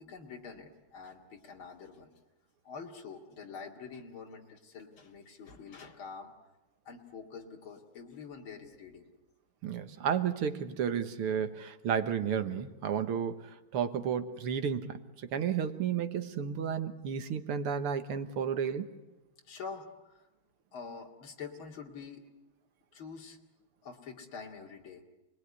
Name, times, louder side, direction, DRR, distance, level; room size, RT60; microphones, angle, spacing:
voice 1, 0.0-2.1 2.6-6.3 6.8-9.1 19.4-20.2 20.7-22.2 22.9-23.4 23.8-25.0, left 5 dB, 65° left, 1 dB, 3.2 m, -46 dB
voice 2, 9.6-18.9, right 7 dB, 90° right, 10 dB, 2.2 m, -32 dB
28.5 x 21.0 x 9.7 m, 1.1 s
omnidirectional pair, 2.4 m